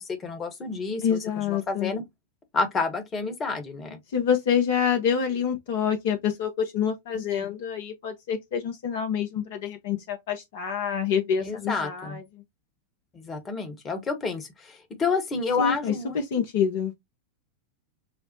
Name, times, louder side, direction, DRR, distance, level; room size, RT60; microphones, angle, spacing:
voice 1, 0.0-2.0 2.5-4.0 7.1-7.5 11.4-12.2 13.1-16.2, left 4 dB, 25° left, 1.0 m, -30 dB
voice 2, 1.0-1.9 4.1-12.2 15.6-16.9, left 7 dB, 55° left, 0.7 m, -27 dB
6.0 x 2.0 x 2.6 m
figure-of-eight pair, 90°, 0 cm